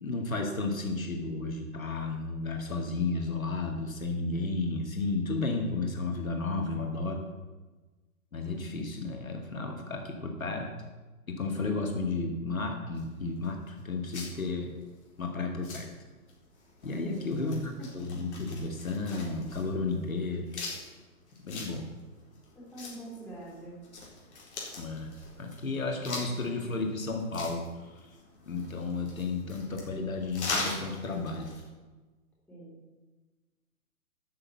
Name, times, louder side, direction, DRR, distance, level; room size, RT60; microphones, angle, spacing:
voice 1, 0.0-7.2 8.3-10.7 11.3-14.7 15.2-15.9 16.8-20.5 21.4-21.9 24.8-25.1 25.4-27.9 28.5-31.5, left 3 dB, 65° left, 3 dB, 2.0 m, -33 dB
sound 1, 12.9-31.7, left 3 dB, 50° left, 4.0 m, -42 dB
voice 2, 17.1-17.5 17.8-18.1 22.5-23.8 26.2-27.0 32.5-32.8, right 2 dB, 5° left, -7 dB, 3.6 m, -46 dB
12.5 x 6.7 x 7.1 m, 1.2 s
figure-of-eight pair, 125°, 44 cm